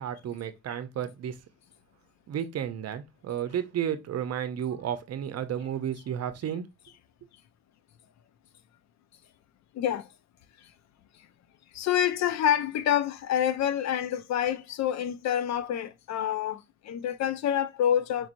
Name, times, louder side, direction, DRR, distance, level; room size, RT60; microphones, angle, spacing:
voice 1, 0.0-1.4 2.3-6.7, right 9 dB, 55° right, 0.7 m, -32 dB
voice 2, 9.8-10.1 11.7-18.3, left 10 dB, 65° left, 0.5 m, -27 dB
4.5 x 3.0 x 2.5 m
cardioid pair, 90°, 30 cm